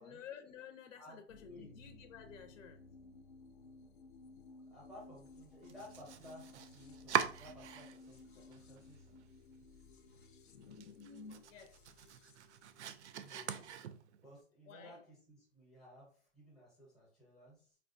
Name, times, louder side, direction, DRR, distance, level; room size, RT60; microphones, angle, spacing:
voice 1, 0.0-2.8 10.4-11.8 14.6-15.0, left 6 dB, 85° left, 0.7 m, -53 dB
voice 2, 1.0-1.7 4.7-9.1 13.2-13.7 14.2-17.7, left 1 dB, ahead, 0.6 m, -56 dB
sound 1, 1.3-13.7, left 3 dB, 45° left, 0.5 m, -58 dB
Domestic sounds home sounds, 5.6-8.2 8.5-9.3 9.6-9.7 10.1-10.2 10.6-14.3, right 9 dB, 65° right, 0.5 m, -41 dB
4.5 x 2.3 x 2.5 m
hypercardioid pair, 170°, 38 cm